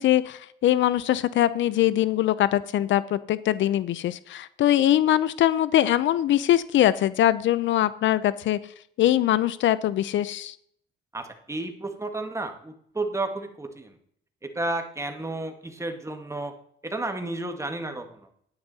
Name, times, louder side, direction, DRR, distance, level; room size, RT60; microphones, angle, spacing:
voice 1, 0.0-8.6 9.0-10.5, left 12 dB, 70° left, 17 dB, 0.5 m, -22 dB
voice 2, 11.1-14.0 14.4-16.5 16.8-18.2, right 2 dB, 15° right, 5 dB, 1.7 m, -32 dB
9.7 x 9.6 x 4.1 m, 0.67 s
cardioid pair, 90°, 20 cm